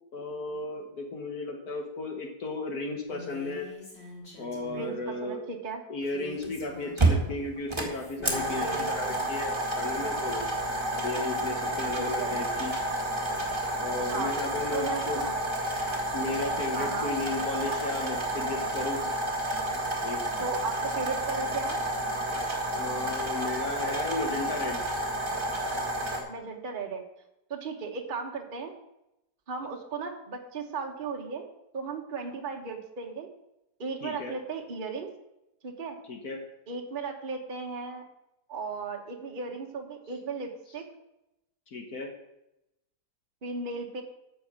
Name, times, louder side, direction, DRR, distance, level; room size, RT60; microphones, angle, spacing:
voice 1, 0.1-3.7 4.4-5.4 5.9-10.5 11.0-12.7 13.8-15.2 16.1-19.0 20.0-20.2 22.8-24.8 34.0-34.3 36.1-36.4 41.7-42.1, left 3 dB, 65° left, 3 dB, 1.8 m, -34 dB
Female speech woman speaking, 3.1-5.0 6.0-7.4 7.9-8.9, left 2 dB, 40° left, 3.2 m, -45 dB
voice 2, 5.2-5.8 8.5-9.2 12.0-12.4 14.1-14.4 14.7-15.3 16.7-17.1 20.4-21.8 26.3-27.0 27.5-28.7 29.5-31.5 31.7-33.3 33.8-35.1 35.6-36.0 36.7-38.0 38.5-40.8 43.4-44.0, right 4 dB, 35° right, 2 dB, 1.2 m, -36 dB
sfx analogradio closed tape deck, 6.4-6.5 7.0-26.2, right 1 dB, 15° right, 1.8 m, -30 dB
9.0 x 6.2 x 7.6 m, 0.88 s
omnidirectional pair, 1.8 m